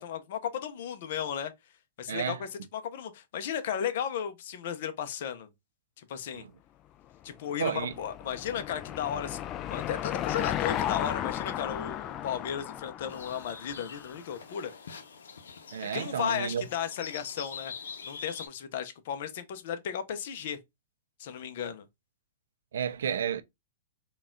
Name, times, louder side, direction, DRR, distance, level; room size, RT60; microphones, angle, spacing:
voice 1, 0.0-1.5 2.0-5.5 6.0-6.4 7.2-14.7 15.9-17.7 18.0-20.6 21.2-21.8, left 8 dB, 55° left, 0.7 m, -35 dB
voice 2, 2.1-2.4 6.3-6.5 7.6-7.9 15.7-16.6 22.7-23.4, right 8 dB, 85° right, 0.5 m, -31 dB
Car passing by / Engine, 7.3-14.2, left 11 dB, 25° left, 0.3 m, -35 dB
sound 1, 13.1-18.5, left 6 dB, 90° left, 0.7 m, -45 dB
3.9 x 2.4 x 3.7 m
hypercardioid pair, 150°, 0 cm